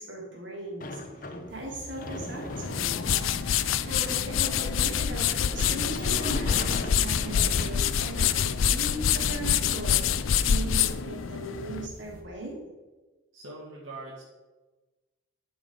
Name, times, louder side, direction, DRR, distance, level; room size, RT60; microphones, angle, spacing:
voice 1, 0.0-3.1 3.9-12.6, right 2 dB, 70° right, -3 dB, 3.1 m, -38 dB
Sliding door, 0.8-8.3, left 2 dB, 45° left, 0.9 m, -40 dB
sound 1, 1.5-12.2, right 1 dB, 45° right, 1.3 m, -46 dB
sound 2, 2.5-11.9, left 8 dB, 90° left, 0.5 m, -26 dB
voice 2, 13.3-14.3, right 2 dB, 85° right, -6 dB, 2.0 m, -42 dB
11.5 x 5.6 x 5.1 m, 1.2 s
head